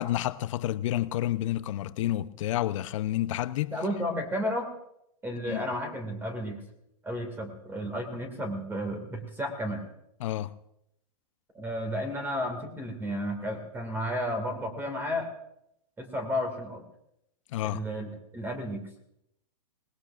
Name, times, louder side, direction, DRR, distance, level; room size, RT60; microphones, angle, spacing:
voice 1, 0.0-3.8 5.5-5.6 10.2-10.5 17.5-17.8, left 13 dB, 50° left, 0.8 m, -29 dB
voice 2, 3.7-4.7 5.2-6.6 7.0-9.8 11.5-15.3 16.0-16.8 17.6-18.9, equal, 10° right, 2.3 m, -32 dB
25.5 x 19.0 x 2.6 m
hypercardioid pair, 140°, 20 cm